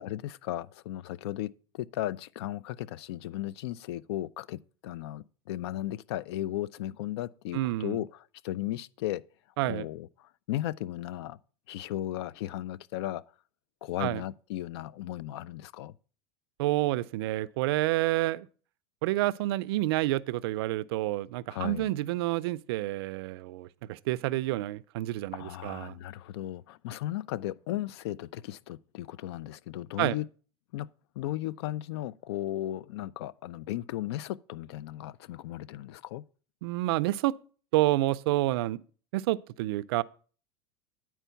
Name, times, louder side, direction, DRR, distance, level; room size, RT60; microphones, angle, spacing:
voice 1, 0.0-9.2 9.6-11.4 11.7-13.2 13.8-15.9 21.5-21.9 25.3-30.2 30.7-30.9 31.2-36.2, left 14 dB, 70° left, 0.4 m, -36 dB
voice 2, 7.5-8.0 9.6-9.9 14.0-14.2 16.6-18.5 19.0-26.0 30.0-30.2 36.6-37.3 37.7-38.8 39.1-40.0, right 17 dB, 65° right, 0.4 m, -29 dB
9.2 x 4.5 x 5.6 m
supercardioid pair, 165°, 14 cm